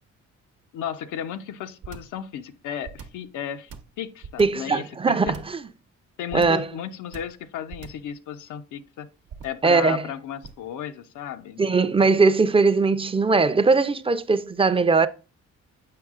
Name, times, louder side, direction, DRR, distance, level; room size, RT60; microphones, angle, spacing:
voice 1, 0.7-5.4 6.2-9.1 9.4-11.6, left 9 dB, 80° left, 0.7 m, -34 dB
sound 1, 1.8-2.2 2.8-3.3 3.7-4.7 5.2-5.6 6.3-6.7 7.1-7.4 7.7-8.1 9.3-9.7 10.4-10.7, right 6 dB, 85° right, 0.9 m, -41 dB
voice 2, 4.4-5.7 6.3-6.7 9.6-10.1 11.6-15.1, right 4 dB, 20° right, 0.4 m, -20 dB
7.6 x 5.3 x 2.4 m
cardioid pair, 90°, 30 cm